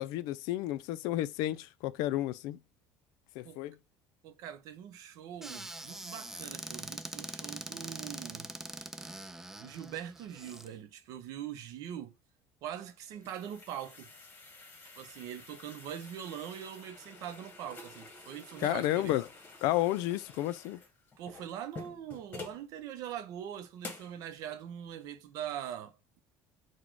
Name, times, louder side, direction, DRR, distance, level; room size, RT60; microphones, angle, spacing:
voice 1, 0.0-2.6 3.4-3.8 18.6-19.2 19.6-20.8, left 15 dB, 75° left, 0.3 m, -31 dB
voice 2, 4.2-8.5 9.6-12.1 12.6-14.1 15.0-19.2 21.2-26.2, right 10 dB, 65° right, 0.6 m, -42 dB
Squeak / Cupboard open or close, 5.4-10.7, right 1 dB, 5° right, 0.4 m, -43 dB
sound 1, 12.8-22.7 23.2-23.3 23.8-24.2, left 3 dB, 30° left, 1.2 m, -50 dB
4.0 x 2.2 x 4.5 m
cardioid pair, 130°, 7 cm